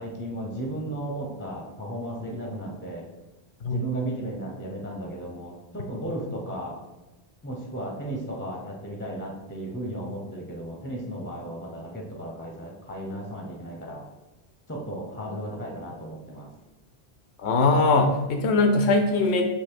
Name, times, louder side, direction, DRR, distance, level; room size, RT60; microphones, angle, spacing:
voice 1, 0.0-3.1 3.6-6.8 7.4-14.0 14.7-16.5, right 1 dB, 15° left, 0 dB, 0.5 m, -35 dB
voice 2, 17.4-19.4, left 3 dB, 85° left, 5 dB, 0.9 m, -21 dB
4.0 x 2.8 x 4.4 m, 1.1 s
omnidirectional pair, 1.1 m